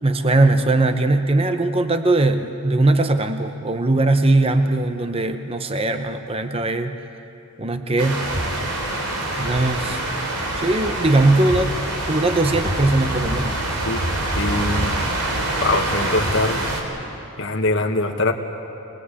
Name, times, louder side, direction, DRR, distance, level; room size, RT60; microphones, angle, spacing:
voice 1, 0.0-7.0 7.6-8.3 9.4-10.0 10.6-11.8 12.1-13.6, right 2 dB, 25° right, 8 dB, 0.8 m, -20 dB
sound 1, 8.0-16.8, right 1 dB, 90° right, 3.7 m, -25 dB
voice 2, 14.4-14.9 15.6-16.6 17.4-18.3, left 2 dB, 55° left, 3 dB, 1.6 m, -22 dB
25.5 x 21.0 x 8.3 m, 2.9 s
head